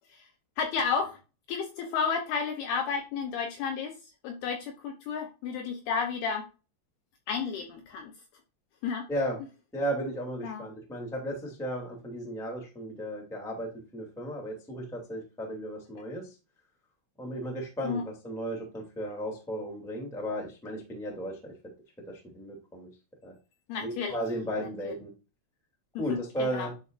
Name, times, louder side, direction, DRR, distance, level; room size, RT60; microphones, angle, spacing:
voice 1, 0.6-1.2 1.5-4.0 4.2-6.4 7.3-8.1 8.8-9.1 10.4-10.7 17.8-18.0 23.7-24.2 24.6-24.9 26.0-26.7, left 6 dB, 75° left, 4 dB, 2.4 m, -32 dB
voice 2, 9.7-16.2 17.2-21.5 22.3-22.9 23.2-23.3 23.8-25.1 26.0-26.7, right 1 dB, ahead, -1 dB, 0.9 m, -35 dB
11.0 x 4.6 x 2.5 m, 0.31 s
omnidirectional pair, 5.3 m